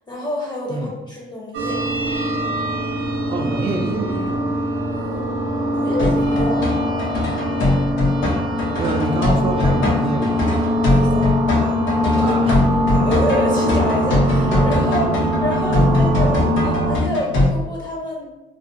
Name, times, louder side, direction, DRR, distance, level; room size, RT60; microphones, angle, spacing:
voice 1, 0.1-1.8 2.4-2.6 4.9-5.4 5.7-6.7 9.3-9.4 10.9-11.3 11.6-11.8 12.1-12.4 12.9-18.3, left 1 dB, 20° left, -3 dB, 0.6 m, -27 dB
sound 1, 1.5-17.0, equal, 80° right, 0.7 m, -22 dB
voice 2, 3.3-4.4 8.8-10.5 12.2-12.6, right 3 dB, 30° right, 3 dB, 0.4 m, -26 dB
sound 2, 6.0-17.5, left 2 dB, 75° left, 0.7 m, -20 dB
2.5 x 2.1 x 2.5 m, 1.0 s
cardioid pair, 90°, 20 cm